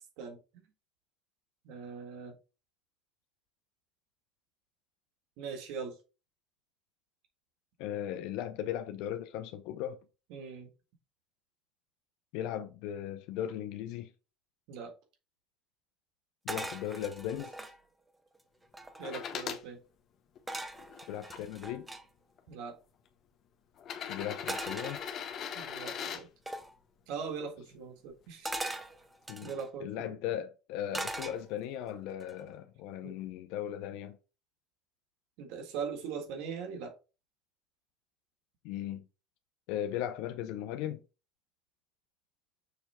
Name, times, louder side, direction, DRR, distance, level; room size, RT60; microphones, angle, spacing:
voice 1, 1.6-2.3 5.4-5.9 10.3-10.7 14.7-14.9 19.0-19.8 22.5-22.8 25.5-26.3 27.1-28.6 29.4-30.1 33.0-33.2 35.4-36.9, right 6 dB, 75° right, 1.7 m, -40 dB
voice 2, 7.8-10.0 12.3-14.1 16.4-17.6 21.1-21.9 24.1-25.0 29.3-29.5 29.8-34.2 38.6-39.1 39.7-41.0, left 11 dB, 75° left, 0.6 m, -37 dB
sound 1, 16.5-17.8 18.4-18.5 18.6-19.3 20.5-22.0 24.5-25.6 26.5-26.7 28.5-29.7 30.9-31.8 32.2-32.6, right 2 dB, 10° right, 0.7 m, -40 dB
sound 2, 19.0-19.6 20.4-21.4 22.4-22.5 23.8-26.2 28.1-28.2, left 8 dB, 40° left, 1.0 m, -40 dB
6.6 x 3.2 x 4.4 m
cardioid pair, 145°, 0 cm